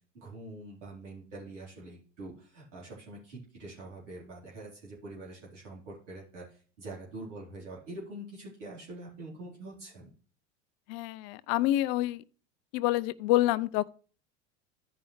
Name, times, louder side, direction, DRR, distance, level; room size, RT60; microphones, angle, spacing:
voice 1, 0.1-10.1, right 2 dB, 80° right, 3.9 m, -45 dB
voice 2, 10.9-12.2 12.7-13.9, left 15 dB, 55° left, 0.5 m, -27 dB
14.5 x 5.4 x 3.2 m
hypercardioid pair, 80°, 36 cm